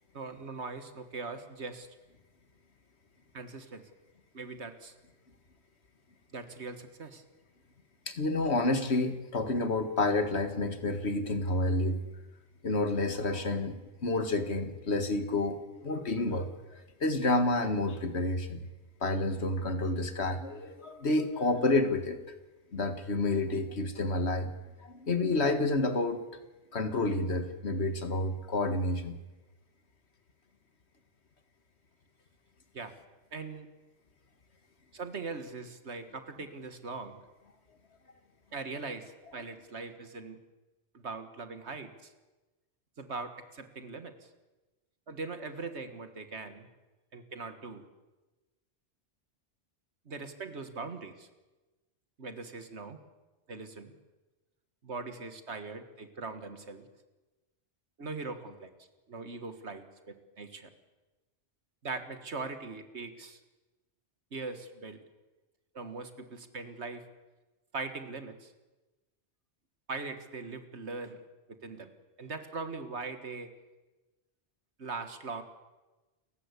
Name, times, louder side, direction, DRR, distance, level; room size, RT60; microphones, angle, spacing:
voice 1, 0.1-1.9 3.3-3.8 4.3-4.9 6.3-7.2 32.7-32.9 33.3-33.7 34.9-37.2 38.5-40.4 40.9-42.1 43.0-44.3 45.1-46.7 47.1-47.8 50.1-51.3 52.2-53.0 53.5-53.9 54.8-56.9 58.0-58.7 59.1-60.7 61.8-63.4 64.3-65.0 65.7-67.0 67.7-68.5 69.9-71.2 71.5-71.9 72.2-73.5 74.8-75.4, right 4 dB, 75° right, 8 dB, 1.9 m, -41 dB
voice 2, 8.1-12.0 12.6-16.5 17.0-18.6 19.0-22.2 22.7-24.5 24.8-26.2 26.7-29.2, left 2 dB, 70° left, 9 dB, 2.1 m, -29 dB
29.0 x 15.0 x 8.3 m, 1.1 s
omnidirectional pair, 1.2 m